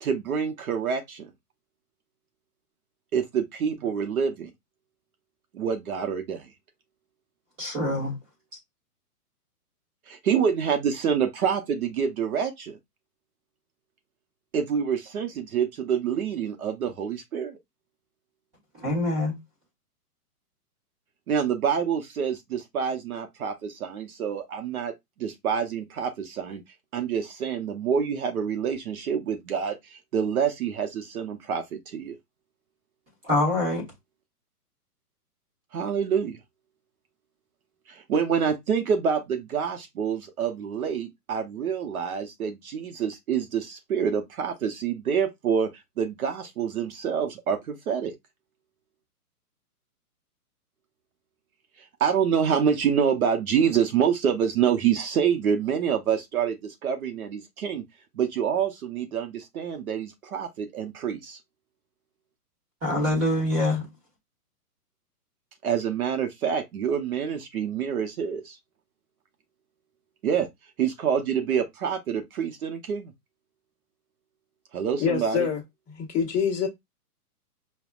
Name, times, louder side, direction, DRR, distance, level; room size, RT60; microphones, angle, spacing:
voice 1, 0.0-1.3 3.1-4.5 5.5-6.5 10.1-12.8 14.5-17.6 21.3-24.9 25.2-26.6 26.9-32.2 35.7-36.4 37.9-45.7 46.0-48.1 51.8-57.8 58.1-61.4 65.6-68.6 70.2-70.5 70.8-73.1 74.7-75.5, right 7 dB, 65° right, 0.8 m, -27 dB
voice 2, 7.6-8.2 18.7-19.3 33.2-33.8 62.8-63.9, left 1 dB, 20° right, 1.2 m, -25 dB
voice 3, 75.0-75.6 75.9-76.7, left 7 dB, 15° left, 1.0 m, -25 dB
5.3 x 2.3 x 2.3 m
hypercardioid pair, 145°, 47 cm